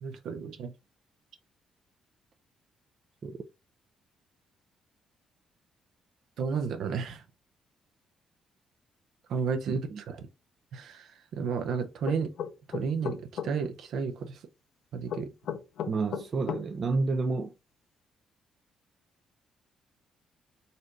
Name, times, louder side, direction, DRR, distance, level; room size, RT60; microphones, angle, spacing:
voice 1, 0.0-0.7 6.4-7.2 9.3-10.2 10.7-12.3 12.7-14.4 14.9-15.3, right 5 dB, 75° right, 0.8 m, -32 dB
sound 1, 12.1-13.5 15.1-16.6, left 8 dB, 75° left, 0.7 m, -34 dB
voice 2, 15.9-17.5, right 3 dB, 45° right, 0.5 m, -29 dB
4.1 x 2.6 x 3.1 m
cardioid pair, 90°, 0 cm